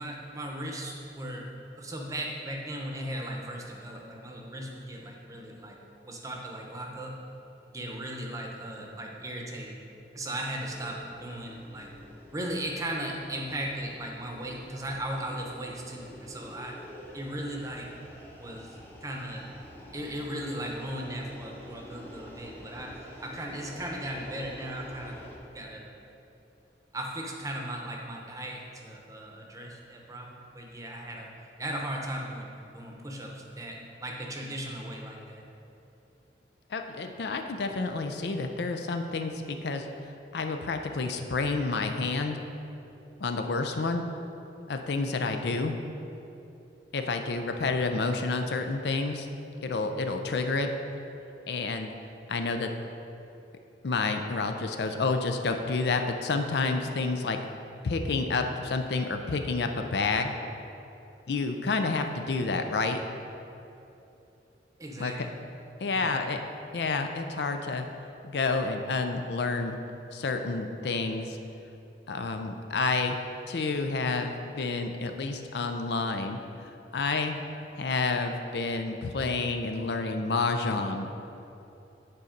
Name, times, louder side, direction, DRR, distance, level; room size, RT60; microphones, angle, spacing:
voice 1, 0.0-1.5 1.7-5.8 6.0-7.1 7.7-9.8 10.1-11.9 12.3-16.8 17.1-17.9 18.4-18.7 19.0-19.5 19.9-25.2 25.5-25.9 26.9-31.3 31.6-35.4 64.8-65.4 65.9-66.1, right 1 dB, 20° right, 0 dB, 0.8 m, -37 dB
sound 1, 10.7-25.4, equal, 10° left, 0.9 m, -48 dB
voice 2, 36.7-39.9 40.3-42.4 43.2-44.1 44.7-45.7 46.9-49.3 49.6-50.7 51.5-51.9 52.3-52.7 53.8-57.4 57.8-60.3 61.3-63.0 65.0-65.3 65.8-66.4 66.7-67.9 68.2-69.8 70.1-71.4 72.1-73.2 73.5-77.3 77.8-81.1, left 3 dB, 65° left, 6 dB, 0.5 m, -29 dB
9.0 x 4.1 x 5.1 m, 2.8 s
head